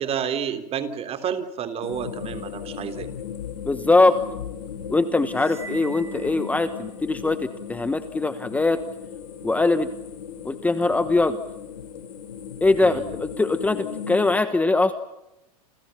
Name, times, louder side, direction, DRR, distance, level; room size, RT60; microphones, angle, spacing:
voice 1, 0.0-3.1 12.9-13.1, right 8 dB, 30° right, 8 dB, 3.5 m, -30 dB
sound 1, 1.8-14.4, left 8 dB, 90° left, 4.0 m, -36 dB
voice 2, 3.6-4.2 4.9-8.8 9.4-9.9 10.4-11.4 12.6-14.9, left 2 dB, 5° left, 11 dB, 1.2 m, -21 dB
sound 2, 5.3-7.2, right 4 dB, 15° right, 1.8 m, -44 dB
29.0 x 29.0 x 5.9 m, 0.92 s
hypercardioid pair, 125°, 20 cm